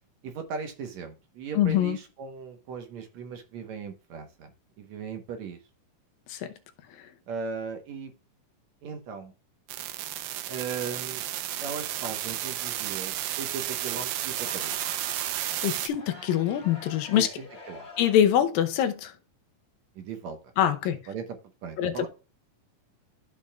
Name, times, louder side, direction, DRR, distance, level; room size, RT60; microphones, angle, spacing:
voice 1, 0.2-4.5 4.8-5.6 7.3-8.1 8.8-9.3 10.5-11.2 11.6-14.8 17.1-17.9 20.0-20.4 21.1-21.3 21.6-22.1, right 6 dB, 65° right, 2.0 m, -37 dB
voice 2, 1.6-2.0 6.3-6.5 15.6-17.3 18.0-19.1 20.6-21.0 21.8-22.1, left 10 dB, 80° left, 2.5 m, -24 dB
sound 1, 9.7-15.9, right 13 dB, 85° right, 2.5 m, -32 dB
Crowd, 14.2-18.4, left 3 dB, 25° left, 1.7 m, -46 dB
14.0 x 5.3 x 2.3 m
omnidirectional pair, 4.1 m